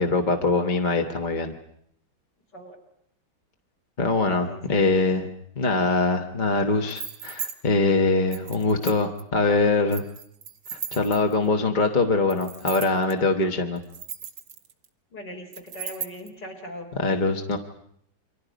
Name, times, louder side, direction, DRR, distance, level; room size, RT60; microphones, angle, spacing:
voice 1, 0.0-1.5 4.0-5.3 5.6-10.0 10.9-13.8 17.0-17.6, left 3 dB, 30° left, 3 dB, 1.0 m, -23 dB
voice 2, 4.3-5.0 15.1-16.9, equal, 60° left, 2 dB, 4.3 m, -40 dB
sound 1, 6.9-7.5 8.3-9.2 9.9-11.5 12.3-13.1 13.8-14.8 15.5-16.3, right 7 dB, 90° right, 2.3 m, -36 dB
29.0 x 24.0 x 5.2 m, 0.70 s
omnidirectional pair, 2.2 m